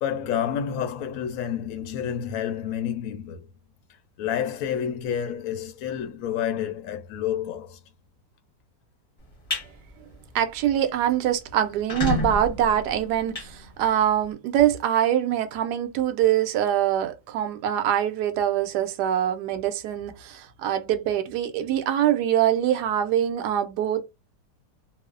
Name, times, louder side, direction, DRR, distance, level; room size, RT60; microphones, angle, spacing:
voice 1, 0.0-3.5 4.2-7.8, left 9 dB, 70° left, 0.8 m, -29 dB
sound 1, 9.2-9.7 10.1-10.4 10.7-10.8 11.0-11.1 11.7-14.2, left 2 dB, 35° left, 0.5 m, -30 dB
voice 2, 10.3-24.0, right 10 dB, 75° right, 1.1 m, -24 dB
3.0 x 2.0 x 2.4 m
omnidirectional pair, 1.9 m